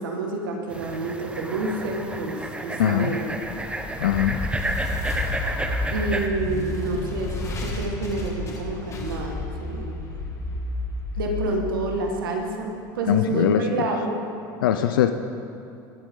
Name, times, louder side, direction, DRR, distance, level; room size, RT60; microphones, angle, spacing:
voice 1, 0.0-3.3 5.9-10.2 11.2-14.2, right 2 dB, 90° right, 1 dB, 1.9 m, -28 dB
sound 1, 0.7-6.3, right 1 dB, 10° right, 1.2 m, -31 dB
voice 2, 2.8-3.1 4.0-4.4 13.1-13.9 14.6-15.1, left 10 dB, 85° left, 8 dB, 0.6 m, -21 dB
sound 2, 3.4-12.6, left 2 dB, 30° left, 2.3 m, -31 dB
20.0 x 8.6 x 3.9 m, 2.8 s
hypercardioid pair, 95°, 11 cm